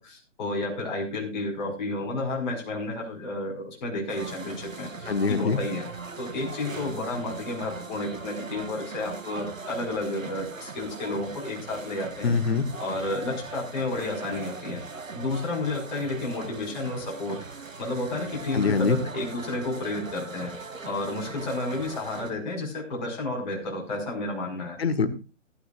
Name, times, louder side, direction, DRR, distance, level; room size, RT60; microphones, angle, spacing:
voice 1, 0.0-5.8 6.2-12.3 12.8-14.8 15.1-17.4 17.8-20.5 20.8-24.8, left 2 dB, 35° left, -2 dB, 5.1 m, -31 dB
sound 1, 4.1-22.3, right 4 dB, 85° right, 1.6 m, -40 dB
voice 2, 5.1-5.6 12.2-12.7 18.5-19.0 24.8-25.1, left 5 dB, 55° left, 12 dB, 1.6 m, -23 dB
19.5 x 9.9 x 2.5 m, 0.32 s
figure-of-eight pair, 140°, 38 cm